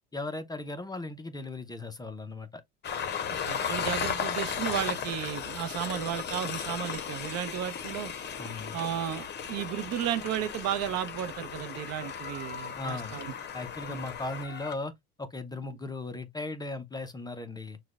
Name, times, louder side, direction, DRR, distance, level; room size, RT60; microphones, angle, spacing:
voice 1, 0.1-2.6 8.4-8.8 12.8-13.2 13.5-14.9 15.2-17.8, left 2 dB, 10° left, 0.5 m, -37 dB
Train, 2.8-14.7, left 7 dB, 30° left, 1.0 m, -36 dB
voice 2, 3.3-8.1 8.7-13.3 13.9-14.0, right 11 dB, 50° right, 0.6 m, -34 dB
6.1 x 2.3 x 2.4 m
hypercardioid pair, 85°, 33 cm